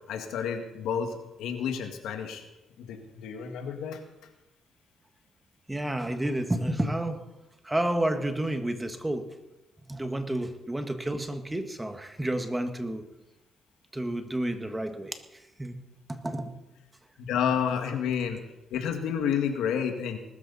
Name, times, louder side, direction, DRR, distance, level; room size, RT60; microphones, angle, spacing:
voice 1, 0.1-2.4 2.8-4.0 17.2-18.4 18.7-20.2, left 7 dB, 85° left, 5 dB, 2.0 m, -30 dB
voice 2, 5.7-7.2 7.6-9.4 9.9-13.1 13.9-15.8 16.1-16.5, right 1 dB, 10° right, 7 dB, 1.6 m, -30 dB
20.0 x 13.0 x 4.2 m, 0.98 s
cardioid pair, 90°, 0 cm